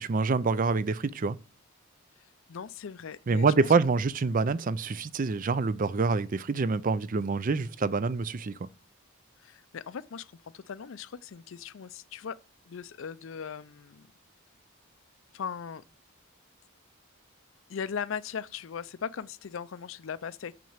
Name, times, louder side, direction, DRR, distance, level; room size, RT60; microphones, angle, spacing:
voice 1, 0.0-1.4 3.3-8.5, right 4 dB, 40° right, 0.4 m, -26 dB
voice 2, 2.5-3.7 9.4-12.4 12.7-14.1 15.3-15.8 17.7-20.5, left 7 dB, 65° left, 0.5 m, -39 dB
6.8 x 6.1 x 7.2 m
head